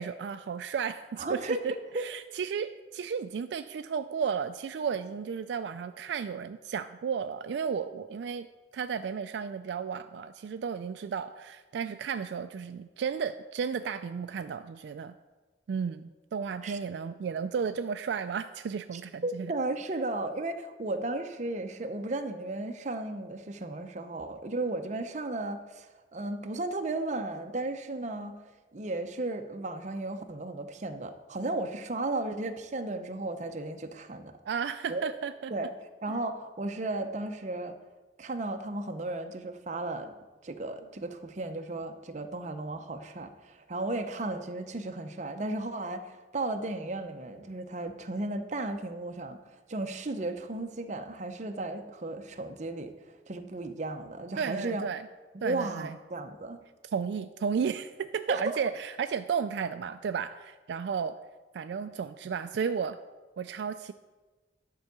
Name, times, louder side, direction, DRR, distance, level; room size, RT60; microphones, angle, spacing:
voice 1, 0.0-8.5 8.7-15.1 15.7-19.5 34.4-35.5 54.4-55.1 55.4-56.0 56.9-61.2 61.5-63.0 63.4-63.9, right 6 dB, 70° right, 9 dB, 0.3 m, -33 dB
voice 2, 1.2-1.6 1.9-2.0 16.6-16.8 18.9-25.9 26.1-28.3 28.7-34.3 34.9-35.0 35.5-35.7 36.0-37.8 38.2-40.1 40.4-49.4 49.7-52.9 53.3-54.9 55.3-56.6 58.3-58.7, right 2 dB, 40° right, 7 dB, 0.7 m, -34 dB
11.0 x 4.6 x 6.7 m, 1.3 s
head